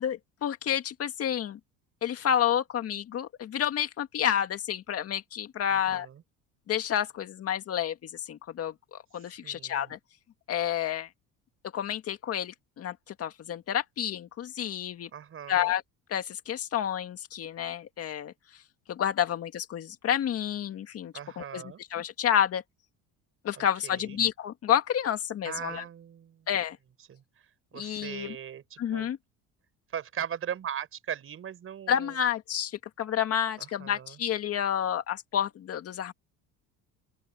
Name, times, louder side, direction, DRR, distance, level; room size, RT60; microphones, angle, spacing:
voice 1, 0.0-1.6 2.0-6.1 6.7-10.0 10.5-11.1 11.7-15.1 15.5-15.8 16.1-18.3 18.9-21.6 21.9-22.6 23.4-25.8 26.5-26.8 27.7-28.4 28.8-29.2 31.9-36.1, left 9 dB, 45° left, 1.9 m, -29 dB
voice 2, 5.9-6.2 9.4-9.9 15.1-15.7 21.1-21.8 23.6-24.2 25.4-26.5 27.1-27.2 27.7-29.1 29.9-32.1 33.6-34.2, right 9 dB, 40° right, 5.8 m, -39 dB
open air
cardioid pair, 130°, 32 cm